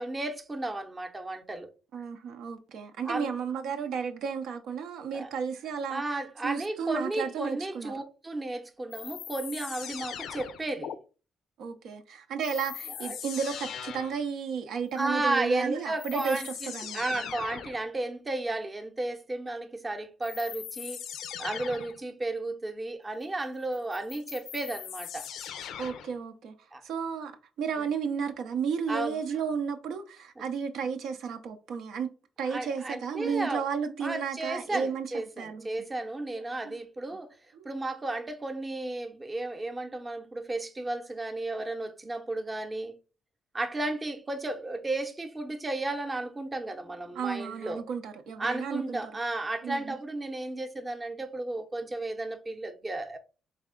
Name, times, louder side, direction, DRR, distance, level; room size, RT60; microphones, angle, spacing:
voice 1, 0.0-1.7 3.0-3.3 5.1-5.3 5.9-10.9 13.0-13.2 15.0-16.5 16.9-21.0 21.4-25.3 26.7-26.8 27.8-27.9 28.9-29.2 30.4-30.5 32.5-33.7 34.0-37.3 37.6-43.0 43.5-47.8 48.4-53.2, right 2 dB, 25° right, 0.6 m, -33 dB
voice 2, 1.9-7.9 11.6-17.3 25.8-26.5 26.8-27.3 27.6-32.1 32.4-35.1 35.4-35.7 36.6-36.8 37.5-37.7 47.1-49.1 49.6-50.0, right 6 dB, 80° right, 0.6 m, -33 dB
sound 1, 8.9-11.0 12.4-14.2 15.5-15.6 16.0-17.8 20.2-22.0 23.7-26.2, left 9 dB, 80° left, 0.4 m, -40 dB
3.4 x 3.3 x 3.7 m
cardioid pair, 90°, 0 cm